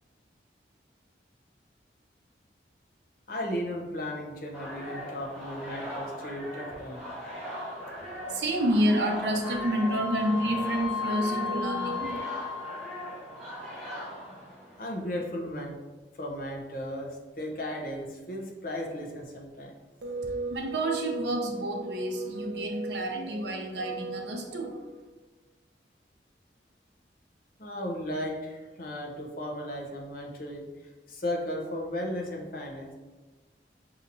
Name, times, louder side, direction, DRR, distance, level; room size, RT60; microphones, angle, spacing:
voice 1, 3.3-7.0 14.8-15.8 16.2-19.7 27.6-30.7 31.1-32.9, left 1 dB, 50° left, 0 dB, 0.7 m, -35 dB
sound 1, 4.5-15.0, equal, 5° left, 1.0 m, -40 dB
voice 2, 7.9-12.2 20.0-25.0, right 1 dB, 80° right, 2 dB, 0.6 m, -29 dB
Wind instrument woodwind instrument, 9.4-13.3, left 5 dB, 25° left, 1.0 m, -35 dB
5.4 x 2.8 x 2.5 m, 1.2 s
head